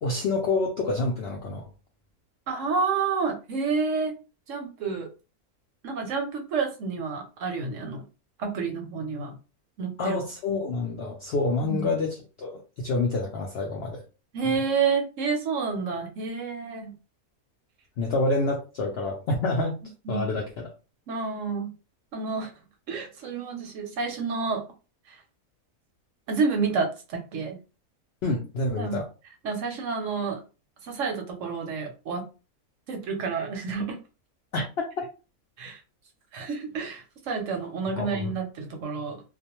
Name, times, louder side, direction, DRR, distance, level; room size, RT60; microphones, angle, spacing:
voice 1, 0.0-1.6 10.0-14.0 18.0-19.8 20.1-20.7 28.2-29.1 34.5-34.6 38.0-38.3, left 2 dB, 70° left, 0 dB, 0.6 m, -27 dB
voice 2, 2.5-4.1 4.5-5.1 5.8-8.0 8.4-9.4 9.8-10.2 11.6-11.9 14.3-16.9 20.0-20.3 21.1-21.7 22.1-22.5 22.9-24.6 25.1-25.2 26.3-27.6 28.8-29.0 29.4-30.4 30.8-32.3 32.9-34.0 35.6-35.8 36.3-39.2, right 5 dB, 65° right, 3 dB, 0.9 m, -29 dB
2.4 x 2.1 x 2.8 m, 0.32 s
omnidirectional pair, 1.6 m